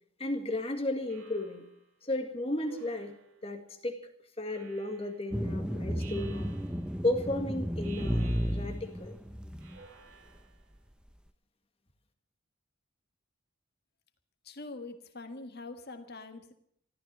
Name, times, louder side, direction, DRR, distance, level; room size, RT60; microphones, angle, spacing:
voice 1, 0.2-1.7 2.0-3.2 3.4-4.0 4.4-6.5 7.0-9.1, left 1 dB, 25° left, 5 dB, 1.8 m, -34 dB
Speech synthesizer, 1.1-1.9 2.6-3.5 4.5-5.3 6.0-7.0 7.8-9.0 9.6-10.6, right 5 dB, 65° right, 3.0 m, -54 dB
sound 1, 5.3-9.9, equal, 5° right, 0.8 m, -33 dB
voice 2, 14.4-16.5, left 3 dB, 45° left, 7 dB, 1.6 m, -44 dB
14.5 x 14.0 x 6.8 m, 0.68 s
head